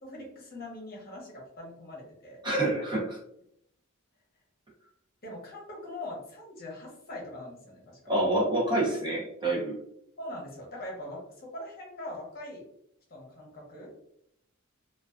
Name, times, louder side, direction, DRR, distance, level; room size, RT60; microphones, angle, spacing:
voice 1, 0.0-2.4 5.2-8.0 10.2-12.6 13.1-13.9, left 1 dB, 45° left, -2 dB, 0.8 m, -42 dB
voice 2, 2.4-3.2 8.1-9.8, right 1 dB, 20° right, -3 dB, 0.6 m, -27 dB
2.3 x 2.2 x 2.3 m, 0.75 s
head